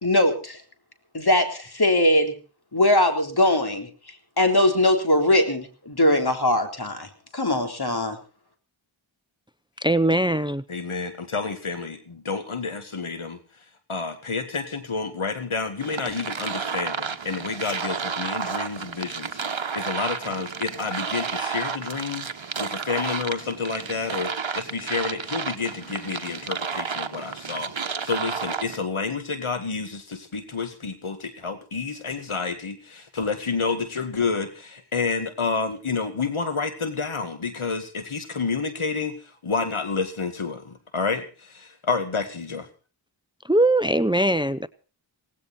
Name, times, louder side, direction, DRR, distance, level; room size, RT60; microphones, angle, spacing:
voice 1, 0.0-0.6 1.1-2.3 2.7-3.9 4.4-8.2, left 1 dB, 50° left, 5 dB, 3.8 m, -21 dB
voice 2, 9.8-10.6 43.5-44.7, right 1 dB, 10° right, 16 dB, 0.8 m, -21 dB
voice 3, 10.7-13.4 13.9-22.3 22.6-39.2 39.4-42.7, left 4 dB, 85° left, 8 dB, 2.1 m, -29 dB
sound 1, 15.8-28.8, right 6 dB, 65° right, 1.3 m, -31 dB
18.0 x 17.0 x 4.3 m, 0.37 s
wide cardioid pair, 45°, 48 cm